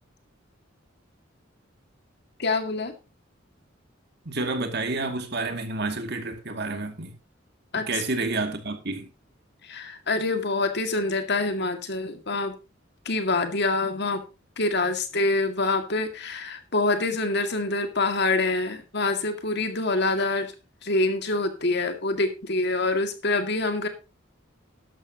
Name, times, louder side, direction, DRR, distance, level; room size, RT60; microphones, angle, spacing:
voice 1, 2.4-2.9 7.7-7.9 9.6-12.6 13.1-14.2 14.6-20.5 20.8-23.9, left 2 dB, 60° left, 2.1 m, -26 dB
voice 2, 4.3-7.1 7.9-9.1, right 3 dB, 55° right, 2.3 m, -29 dB
12.5 x 12.0 x 2.9 m
head